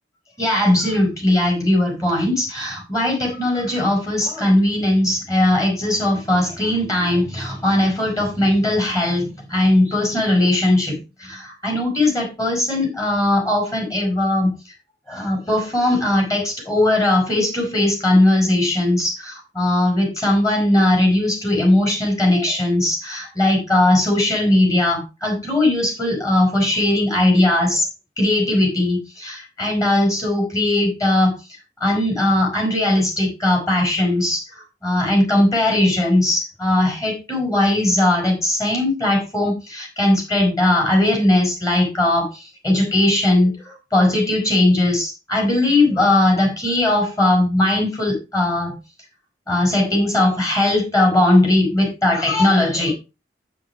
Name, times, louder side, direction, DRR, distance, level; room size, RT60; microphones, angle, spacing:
voice 1, 0.4-14.5 15.1-27.9 28.2-31.4 31.8-34.5 34.8-48.7 49.5-52.9, left 1 dB, 20° left, 1 dB, 4.8 m, -19 dB
8.1 x 7.5 x 4.8 m, 0.28 s
head